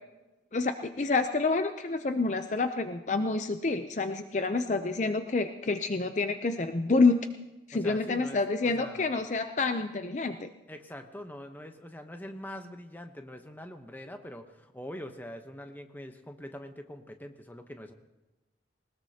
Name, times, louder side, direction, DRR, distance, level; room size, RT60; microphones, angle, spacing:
voice 1, 0.5-7.3 7.7-10.5, left 3 dB, 40° left, 8 dB, 0.5 m, -28 dB
voice 2, 7.7-9.1 10.7-17.9, left 1 dB, 10° left, 6 dB, 0.9 m, -44 dB
20.0 x 19.5 x 2.9 m, 1.1 s
head